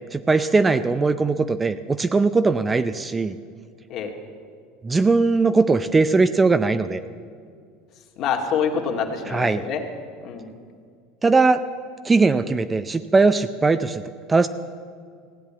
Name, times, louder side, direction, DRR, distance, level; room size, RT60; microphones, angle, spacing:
voice 1, 0.1-3.4 4.8-7.0 9.3-9.6 11.2-11.6 12.0-14.0 14.3-14.5, right 3 dB, 15° right, 11 dB, 0.5 m, -19 dB
voice 2, 8.2-9.8 10.2-10.5, left 6 dB, 50° left, 2 dB, 2.1 m, -26 dB
16.0 x 8.7 x 8.6 m, 2.2 s
supercardioid pair, 125°, 0 cm